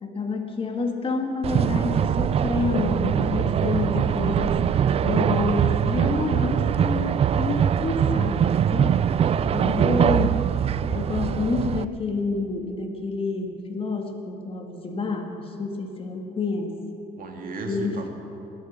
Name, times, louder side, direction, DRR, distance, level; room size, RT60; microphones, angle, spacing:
voice 1, 0.0-4.7 5.0-9.0 9.5-10.5 10.9-16.8 17.7-18.1, left 3 dB, 35° left, 4 dB, 1.7 m, -28 dB
sound 1, 1.4-11.8, right 9 dB, 35° right, 0.4 m, -22 dB
voice 2, 9.2-9.8 17.2-18.1, right 2 dB, 55° right, 3 dB, 2.1 m, -35 dB
20.0 x 8.3 x 7.3 m, 2.8 s
cardioid pair, 110°, 17 cm